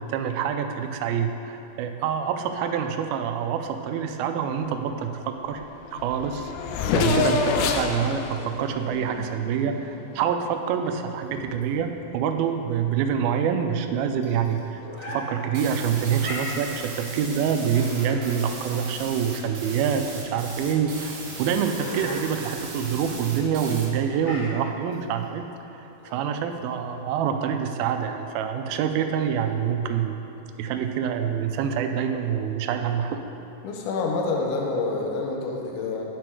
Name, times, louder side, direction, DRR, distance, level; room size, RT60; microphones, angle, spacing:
voice 1, 0.0-5.6 5.9-6.5 6.9-14.8 15.1-30.2 30.6-33.3, right 7 dB, 85° right, 6 dB, 2.4 m, -26 dB
Race car auto racing / Accelerating revving vroom, 5.6-5.7 5.9-9.9, left 5 dB, 90° left, 2.5 m, -27 dB
sound 1, 11.1-27.1, left 1 dB, 30° left, 1.5 m, -41 dB
sound 2, 15.5-23.9, right 3 dB, 60° right, 1.5 m, -38 dB
voice 2, 33.6-36.0, left 3 dB, 70° left, 0 dB, 2.1 m, -28 dB
10.0 x 6.0 x 4.7 m, 3.0 s
omnidirectional pair, 4.3 m